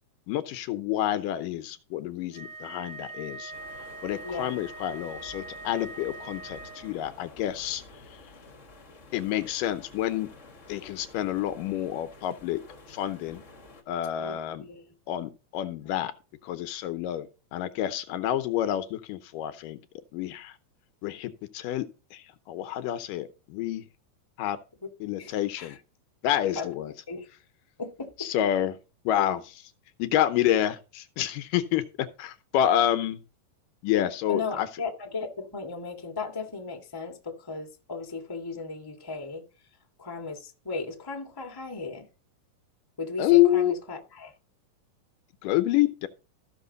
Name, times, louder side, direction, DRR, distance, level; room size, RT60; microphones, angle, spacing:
voice 1, 0.3-3.5 4.0-7.8 9.1-10.3 10.7-12.6 12.9-13.4 13.9-14.7 15.1-16.1 16.4-19.8 20.1-20.6 21.0-23.9 24.4-24.6 25.0-25.8 26.2-26.9 28.2-28.8 29.1-29.7 30.0-33.2 33.8-34.7 43.2-43.7 45.4-46.1, left 12 dB, 85° left, 2.5 m, -28 dB
Wind instrument woodwind instrument, 2.3-7.0, right 2 dB, 80° right, 3.7 m, -42 dB
sound 1, 3.5-13.8, left 2 dB, 35° left, 1.3 m, -51 dB
voice 2, 4.2-4.6 14.2-14.3 14.6-14.9 15.8-15.9 24.8-24.9 25.2-25.8 26.5-26.7 27.1-27.3 27.8-28.1 34.3-39.4 40.0-42.1 43.0-44.3, left 4 dB, 15° left, 0.9 m, -36 dB
14.5 x 6.5 x 3.9 m
omnidirectional pair, 3.7 m